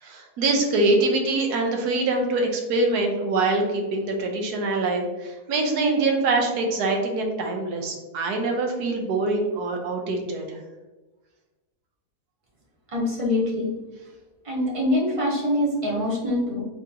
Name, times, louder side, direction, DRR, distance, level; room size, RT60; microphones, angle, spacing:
voice 1, 0.0-10.6, right 2 dB, 75° right, 2 dB, 1.3 m, -24 dB
voice 2, 12.9-13.7 14.4-16.6, left 1 dB, 25° right, -4 dB, 0.8 m, -24 dB
3.7 x 3.6 x 2.8 m, 1.2 s
omnidirectional pair, 1.7 m